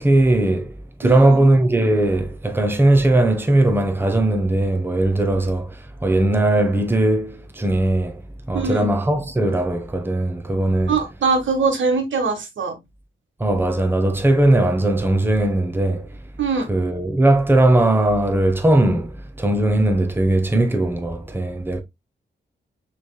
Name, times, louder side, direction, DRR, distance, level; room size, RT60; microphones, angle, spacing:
voice 1, 0.0-8.2 8.5-11.0 13.4-16.2 16.7-21.8, right 1 dB, 10° right, 0.9 m, -19 dB
voice 2, 1.0-1.4 8.5-8.9 10.9-12.8 16.4-16.7, right 4 dB, 80° right, 1.4 m, -22 dB
6.2 x 3.4 x 2.2 m
cardioid pair, 65°, 20 cm